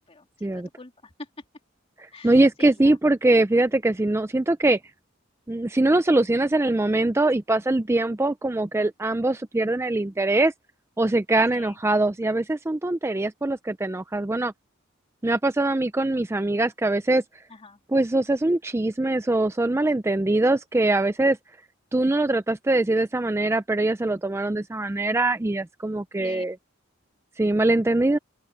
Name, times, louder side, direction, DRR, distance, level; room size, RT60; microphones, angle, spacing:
voice 1, 0.1-1.3 2.1-3.0 11.5-11.8 17.5-17.8 26.2-26.4, left 3 dB, 30° left, 2.6 m, -44 dB
voice 2, 2.2-4.8 5.5-10.5 11.0-14.5 15.2-17.2 17.9-21.4 21.9-26.6 27.4-28.2, right 2 dB, 15° right, 0.4 m, -22 dB
open air
head